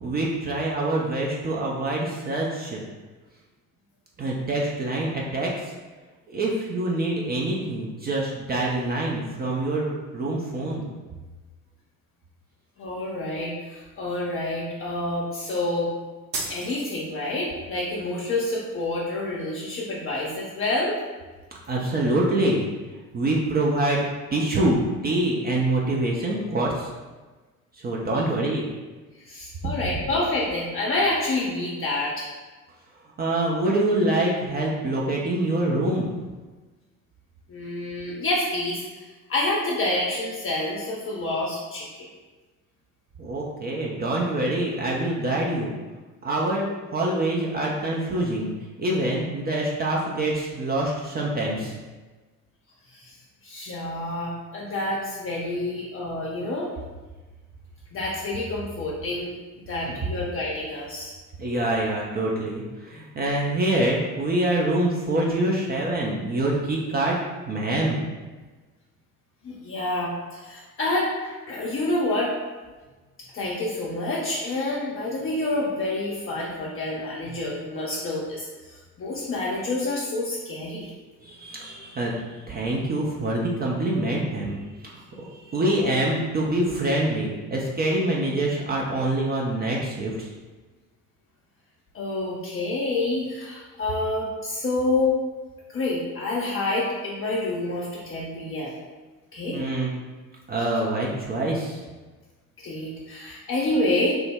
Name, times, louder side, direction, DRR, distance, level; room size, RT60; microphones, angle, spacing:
voice 1, 0.0-2.8 4.2-5.7 6.3-10.9 21.7-22.7 23.1-26.9 27.7-28.6 33.2-36.1 43.2-45.7 46.2-48.5 48.8-51.7 59.9-60.0 61.4-67.2 67.5-68.0 81.2-90.3 99.5-99.9 100.5-101.8, right 1 dB, 20° right, -3 dB, 0.4 m, -25 dB
voice 2, 12.8-15.9 16.5-21.0 28.1-28.2 29.2-32.3 37.5-42.1 52.9-53.1 53.4-56.7 57.9-61.2 69.4-72.3 73.3-80.9 91.9-95.1 95.7-98.7 99.3-99.6 102.6-104.1, left 2 dB, 30° left, -4 dB, 0.6 m, -28 dB
sound 1, 16.3-17.4, right 3 dB, 70° right, 0.8 m, -34 dB
3.1 x 2.1 x 3.4 m, 1.3 s
figure-of-eight pair, 55°, 45 cm